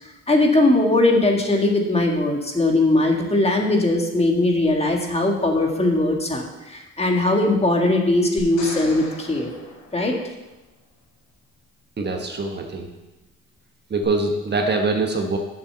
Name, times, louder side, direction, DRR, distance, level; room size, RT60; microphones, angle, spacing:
voice 1, 0.3-9.5 9.9-10.2, left 2 dB, 20° left, 1 dB, 1.7 m, -20 dB
sound 1, 8.4-10.7 14.0-14.1, left 2 dB, 75° left, 4.0 m, -39 dB
voice 2, 12.0-12.9 13.9-15.4, right 3 dB, 35° right, 3 dB, 1.3 m, -23 dB
7.0 x 7.0 x 6.8 m, 1.0 s
cardioid pair, 90°, 30 cm